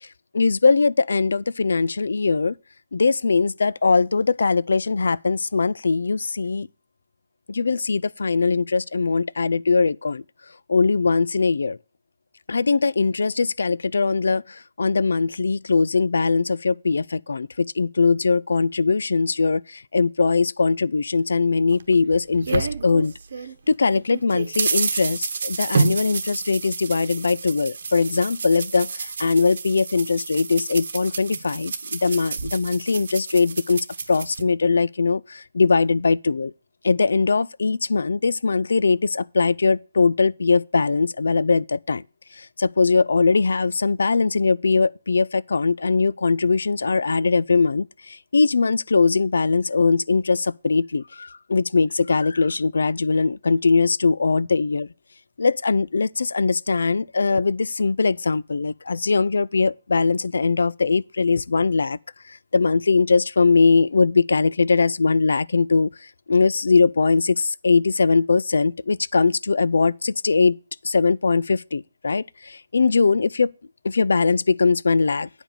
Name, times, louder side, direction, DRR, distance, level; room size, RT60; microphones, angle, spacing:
voice 1, 0.3-2.5 2.9-6.7 7.5-10.2 10.7-11.8 12.5-23.1 23.7-36.5 36.8-42.0 42.4-54.9 55.4-62.0 62.5-65.9 66.3-70.6 70.8-73.5 73.8-75.3, left 4 dB, 85° left, 0.4 m, -21 dB
sound 1, 21.7-23.5 23.9-34.4, right 5 dB, 50° right, 1.0 m, -29 dB
9.0 x 5.0 x 6.6 m
hypercardioid pair, 180°, 0 cm